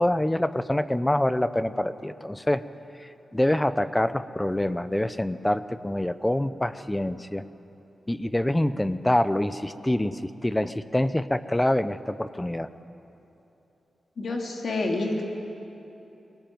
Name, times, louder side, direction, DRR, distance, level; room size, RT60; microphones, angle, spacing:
voice 1, 0.0-2.6 3.0-7.4 8.1-12.7, left 1 dB, 10° left, 13 dB, 0.7 m, -26 dB
voice 2, 14.2-15.2, left 2 dB, 60° left, 1 dB, 3.2 m, -28 dB
22.5 x 19.0 x 9.3 m, 2.9 s
wide cardioid pair, 100°, 0 cm